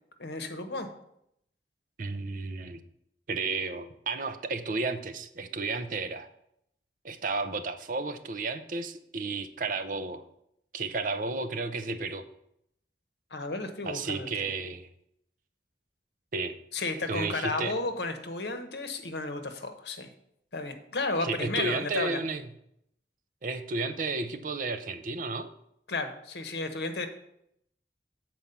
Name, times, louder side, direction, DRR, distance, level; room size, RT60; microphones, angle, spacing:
voice 1, 0.2-0.9 13.3-14.3 16.7-20.1 20.5-22.2 25.9-27.1, left 3 dB, 75° left, 7 dB, 1.0 m, -33 dB
voice 2, 2.0-2.8 3.3-6.3 7.0-10.2 10.7-12.2 13.8-14.9 16.3-16.5 17.1-17.7 21.2-22.4 23.4-25.5, right 3 dB, 50° right, 10 dB, 0.5 m, -32 dB
7.2 x 4.5 x 6.8 m, 0.76 s
head